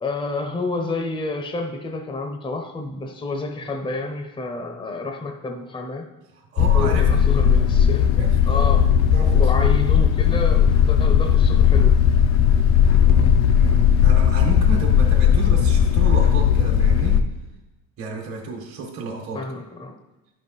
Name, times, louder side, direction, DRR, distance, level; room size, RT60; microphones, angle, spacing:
voice 1, 0.0-6.1 6.7-8.2 8.4-8.9 9.3-12.0 19.3-20.0, left 3 dB, 15° left, 4 dB, 0.8 m, -29 dB
voice 2, 6.3-7.1 8.2-8.8 9.1-9.4 12.9-17.2 18.0-19.4, right 4 dB, 45° right, 0 dB, 1.5 m, -32 dB
sound 1, 6.6-17.2, left 8 dB, 55° left, 0.6 m, -17 dB
10.0 x 5.6 x 4.0 m, 1.0 s
cardioid pair, 120°, 34 cm